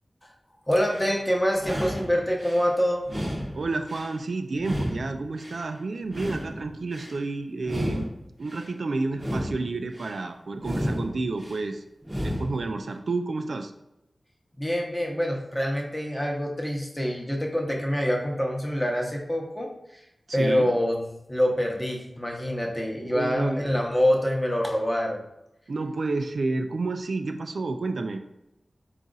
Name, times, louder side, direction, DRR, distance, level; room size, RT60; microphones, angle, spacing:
voice 1, 0.7-3.1 14.6-20.0 20.3-21.0 21.3-25.2, equal, 15° left, 0 dB, 0.8 m, -26 dB
sound 1, 0.7-1.2 1.5-2.7 3.0-4.2 4.6-5.7 6.0-7.2 7.6-8.7 9.1-10.2 10.6-11.6 12.0-12.7, equal, 15° right, 0.8 m, -33 dB
voice 2, 3.5-8.1 8.4-11.8 12.2-13.7 20.3-20.7 23.0-23.8 25.7-28.2, right 3 dB, 75° right, 7 dB, 0.3 m, -30 dB
4.0 x 2.4 x 3.9 m, 0.87 s
wide cardioid pair, 85°, 0 cm